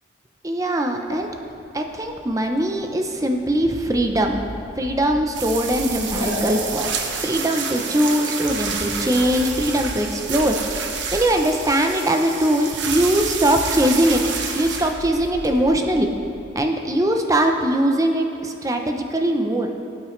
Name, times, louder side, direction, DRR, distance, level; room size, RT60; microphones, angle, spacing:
voice 1, 0.4-1.3 1.7-4.4 4.8-6.9 7.2-10.6 11.1-14.2 14.5-16.1 16.5-19.7, right 1 dB, 15° right, 4 dB, 0.6 m, -21 dB
sound 1, 1.0-10.0, left 1 dB, 70° left, 1.6 m, -39 dB
sound 2, 3.6-7.3 8.4-11.7 12.9-16.6, left 1 dB, 40° left, 0.9 m, -38 dB
sound 3, 5.3-15.7, right 5 dB, 70° right, 1.0 m, -29 dB
17.0 x 8.1 x 3.2 m, 2.9 s
head